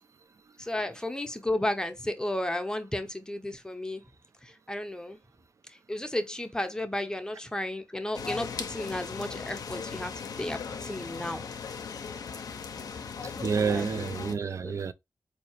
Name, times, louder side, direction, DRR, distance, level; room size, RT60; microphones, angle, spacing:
voice 1, 0.6-4.1 4.4-5.2 5.7-11.5 13.5-14.0 14.6-14.8, left 1 dB, 10° left, 0.7 m, -33 dB
sound 1, 8.1-14.3, left 6 dB, 70° left, 0.5 m, -38 dB
voice 2, 13.2-14.9, right 5 dB, 50° right, 0.4 m, -29 dB
4.0 x 2.7 x 2.9 m
cardioid pair, 60°, 7 cm